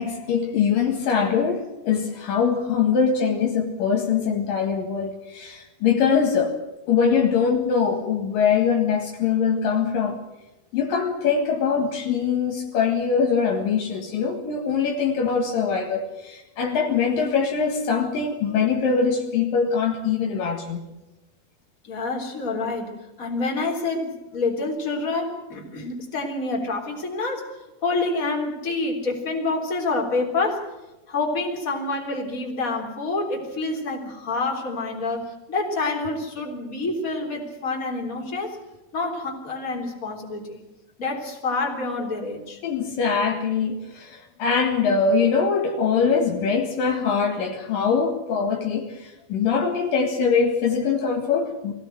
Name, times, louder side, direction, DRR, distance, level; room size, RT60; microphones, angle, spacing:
voice 1, 0.0-6.6 6.9-10.2 10.7-20.8 42.6-51.7, left 6 dB, 65° left, 2 dB, 3.4 m, -23 dB
voice 2, 21.8-27.5 27.8-30.6 31.1-38.6 38.9-40.6 41.0-42.6, left 3 dB, 20° left, 1 dB, 3.7 m, -27 dB
23.0 x 16.5 x 7.9 m, 1.0 s
omnidirectional pair, 4.3 m